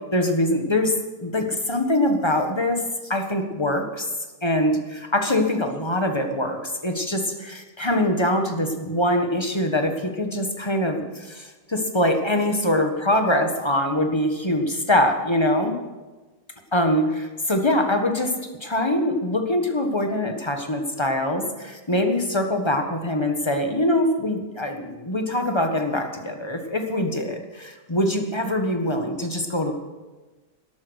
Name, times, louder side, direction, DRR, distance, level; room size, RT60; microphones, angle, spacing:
voice 1, 0.1-4.1 4.4-15.7 16.7-18.3 18.6-29.7, left 1 dB, 20° left, 4 dB, 1.4 m, -23 dB
13.0 x 11.5 x 6.4 m, 1.2 s
omnidirectional pair, 1.7 m